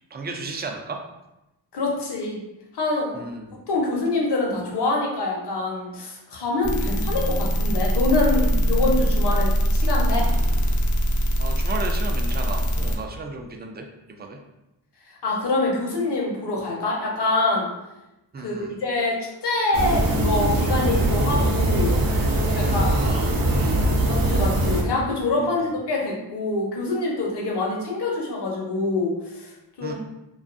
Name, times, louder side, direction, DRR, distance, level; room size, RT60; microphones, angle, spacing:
voice 1, 0.1-1.0 3.1-3.6 6.7-6.9 11.4-14.4 18.3-18.7 22.6-24.2 25.4-25.7 29.8-29.9, right 3 dB, 25° right, 3 dB, 0.4 m, -35 dB
voice 2, 1.7-2.4 2.7-3.2 3.7-10.3 15.2-17.7 18.4-22.0 22.6-23.0 24.0-29.9, left 2 dB, 65° left, -2 dB, 0.8 m, -25 dB
sound 1, 6.6-13.0, equal, 45° left, 0.5 m, -22 dB
sound 2, 19.7-24.8, right 1 dB, 50° right, 0.7 m, -21 dB
2.5 x 2.4 x 2.4 m, 0.94 s
cardioid pair, 55°, 43 cm